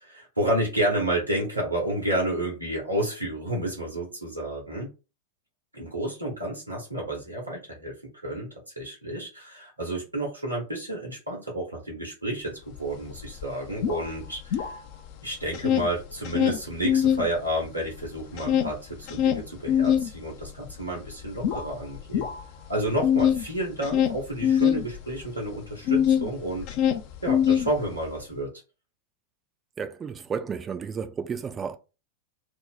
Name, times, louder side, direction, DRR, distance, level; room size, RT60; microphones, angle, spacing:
voice 1, 0.0-4.9 5.7-7.9 8.2-14.8 15.2-22.3 22.7-26.7 27.2-28.5, right 1 dB, 85° right, 1.0 m, -30 dB
sound 1, 12.8-12.9 13.1-15.1 15.4-17.3 17.6-26.3 26.6-28.1, left 9 dB, 45° left, 0.4 m, -24 dB
voice 2, 29.8-31.8, right 6 dB, 20° right, 0.4 m, -32 dB
2.9 x 2.0 x 3.9 m
figure-of-eight pair, 90°, 0 cm